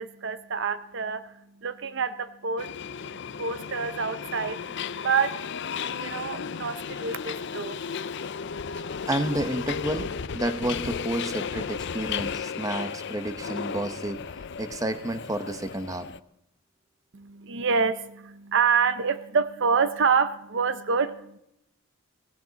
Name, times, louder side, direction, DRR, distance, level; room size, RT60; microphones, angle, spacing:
voice 1, 0.0-2.7 3.0-3.1 3.4-4.6 5.0-5.5 6.0-7.8 17.1-21.4, right 5 dB, 60° right, 12 dB, 0.7 m, -27 dB
Subway metro underground, 2.6-16.2, left 6 dB, 55° left, 0.5 m, -34 dB
voice 2, 9.1-14.2 14.6-16.1, right 1 dB, 15° right, 10 dB, 1.0 m, -30 dB
18.5 x 16.0 x 4.1 m, 0.80 s
head